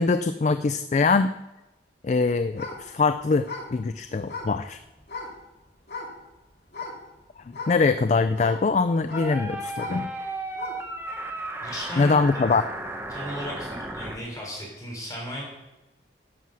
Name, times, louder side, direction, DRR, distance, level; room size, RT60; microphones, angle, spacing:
voice 1, 0.0-1.3 2.0-4.8 7.5-10.1 12.0-12.6, left 4 dB, 40° left, 11 dB, 0.3 m, -23 dB
sound 1, 2.5-5.4 5.9-6.4 6.7-7.1 7.5-12.8 13.3-13.4, left 3 dB, 60° left, 2.5 m, -38 dB
sound 2, 9.1-14.2, right 2 dB, 15° right, 1.0 m, -34 dB
voice 2, 11.6-12.1 13.1-15.4, equal, 20° left, -3 dB, 3.4 m, -35 dB
11.0 x 7.4 x 6.3 m, 1.0 s
head